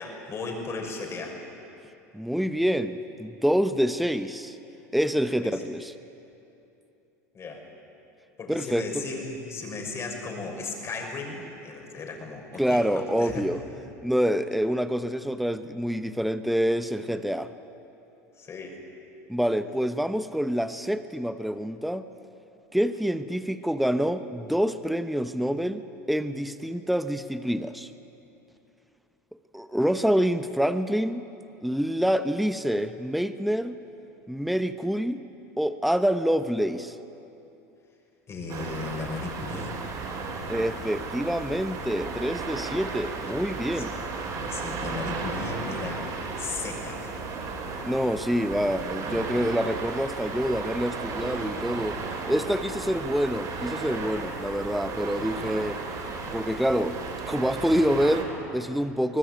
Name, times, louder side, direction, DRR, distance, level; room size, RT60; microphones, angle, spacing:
voice 1, 0.0-1.4 5.4-5.6 7.3-7.6 8.4-13.5 18.4-18.8 38.3-39.7 43.7-43.9 44.5-46.1 46.4-47.1, left 3 dB, 35° left, 2 dB, 6.1 m, -36 dB
voice 2, 2.1-4.6 4.9-5.9 8.5-9.0 12.6-13.6 14.0-17.5 19.3-22.0 22.7-27.9 29.5-31.2 31.6-33.8 34.3-35.2 35.6-36.9 40.5-44.0 47.8-52.0 52.3-55.8 56.3-57.0 57.3-59.2, equal, ahead, 10 dB, 1.0 m, -26 dB
sound 1, 38.5-58.2, right 4 dB, 45° right, 6.2 m, -34 dB
24.0 x 19.5 x 9.1 m, 2.9 s
hypercardioid pair, 90°, 8 cm